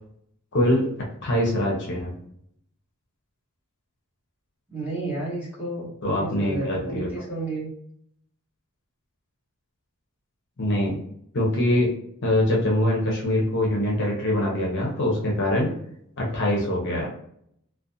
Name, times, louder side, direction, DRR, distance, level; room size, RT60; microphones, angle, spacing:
voice 1, 0.5-0.9 1.2-2.1 6.0-7.1 10.6-11.0 11.3-11.9 12.2-15.7 16.2-17.1, left 1 dB, 55° left, -2 dB, 0.7 m, -23 dB
voice 2, 4.7-7.7, right 2 dB, 10° right, -8 dB, 1.1 m, -32 dB
2.5 x 2.2 x 2.6 m, 0.70 s
head